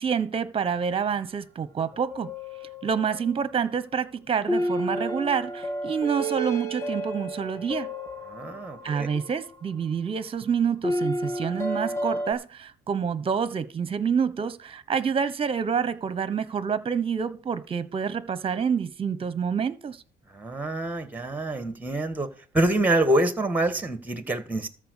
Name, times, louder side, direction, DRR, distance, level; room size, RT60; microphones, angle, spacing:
voice 1, 0.0-2.3 2.8-7.9 8.8-20.0, right 6 dB, 35° right, 1.2 m, -27 dB
sound 1, 1.9-3.5 4.5-9.5 10.8-12.3, equal, 15° left, 2.1 m, -31 dB
voice 2, 8.3-9.2 20.3-22.3 22.5-24.7, right 1 dB, 10° right, 1.9 m, -26 dB
13.5 x 4.7 x 8.3 m
cardioid pair, 110°, 17 cm